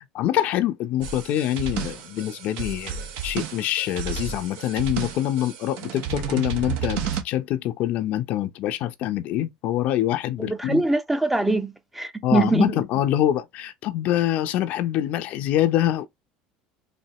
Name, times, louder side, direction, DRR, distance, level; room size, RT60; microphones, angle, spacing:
voice 1, 0.1-10.9 12.2-16.1, left 12 dB, 60° left, 0.6 m, -25 dB
sound 1, 1.0-7.2, right 7 dB, 70° right, 1.0 m, -32 dB
voice 2, 10.4-12.7, right 3 dB, 10° right, 0.7 m, -23 dB
4.3 x 2.7 x 2.9 m
supercardioid pair, 100°, 3 cm